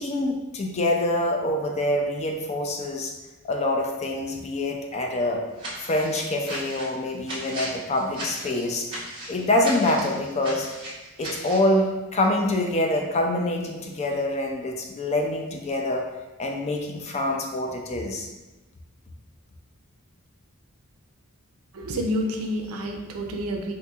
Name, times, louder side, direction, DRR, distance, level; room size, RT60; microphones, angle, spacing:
voice 1, 0.0-3.1 3.4-5.4 5.8-8.9 9.3-10.7 11.2-16.0 16.4-18.3, left 1 dB, 30° left, 2 dB, 0.4 m, -25 dB
sound 1, 5.6-11.7, right 1 dB, 25° right, 0.9 m, -36 dB
voice 2, 21.7-23.7, equal, 85° right, 3 dB, 0.5 m, -29 dB
4.0 x 2.6 x 2.3 m, 1.1 s
head